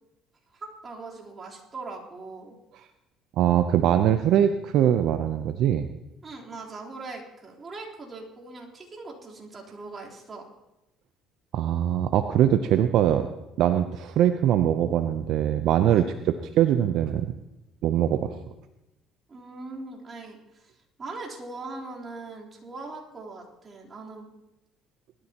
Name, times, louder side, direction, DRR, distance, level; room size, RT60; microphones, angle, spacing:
voice 1, 0.5-2.5 6.2-10.5 15.9-16.1 19.3-20.7 21.0-24.3, right 3 dB, 35° right, -3 dB, 3.7 m, -40 dB
voice 2, 3.4-5.9 11.5-13.3 13.6-17.3 17.8-18.3, right 10 dB, 70° right, 9 dB, 0.7 m, -22 dB
20.5 x 13.0 x 3.0 m, 0.94 s
supercardioid pair, 80°, 0 cm